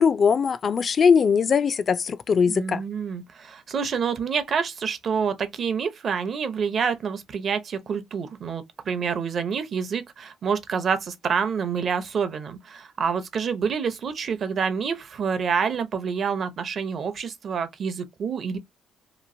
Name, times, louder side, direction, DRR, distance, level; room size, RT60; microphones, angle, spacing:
voice 1, 0.0-2.8, left 6 dB, 50° left, 0.3 m, -20 dB
voice 2, 2.5-18.6, right 6 dB, 55° right, 0.6 m, -27 dB
3.0 x 2.3 x 2.6 m
cardioid pair, 90°, 0 cm